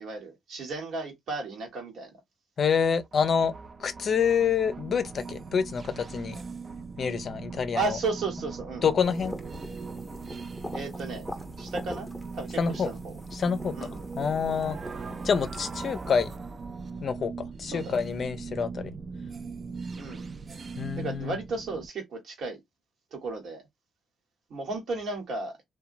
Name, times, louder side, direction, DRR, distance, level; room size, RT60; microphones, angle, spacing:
voice 1, 0.0-2.1 7.7-8.8 10.7-11.3 11.6-12.1 12.3-13.2 13.7-14.1 17.6-18.1 19.9-20.3 21.0-22.6 23.1-23.6 24.5-25.5, right 3 dB, 65° right, 1.2 m, -34 dB
voice 2, 2.6-3.5 3.8-6.4 7.0-8.0 8.8-9.4 12.6-12.9 13.3-13.9 14.2-14.8 15.2-16.3 17.0-18.9 20.8-21.4, left 6 dB, 50° left, 0.5 m, -27 dB
sound 1, 3.0-21.9, right 4 dB, 40° right, 0.4 m, -40 dB
sound 2, 9.0-16.4, left 1 dB, ahead, 0.8 m, -44 dB
2.8 x 2.2 x 2.6 m
cardioid pair, 90°, 0 cm